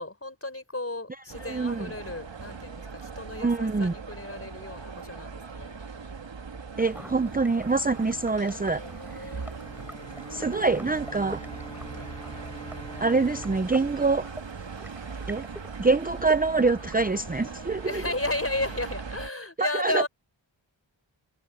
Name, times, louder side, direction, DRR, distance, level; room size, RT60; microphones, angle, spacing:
voice 1, 0.0-5.8 8.2-9.5 10.4-10.6 11.5-12.1 16.2-16.3 17.8-20.1, left 2 dB, 30° left, 5.5 m, -34 dB
sound 1, 1.3-19.3, right 5 dB, 70° right, 1.8 m, -40 dB
voice 2, 1.4-1.9 3.4-3.9 6.8-8.8 9.1-9.3 10.3-11.4 13.0-14.3 15.3-15.4 15.8-18.0 19.6-20.0, right 3 dB, 20° right, 0.6 m, -25 dB
sound 2, 6.8-18.8, equal, 5° right, 7.6 m, -48 dB
Bowed string instrument, 9.6-15.2, left 1 dB, 10° left, 2.5 m, -47 dB
wide cardioid pair, 70°, 46 cm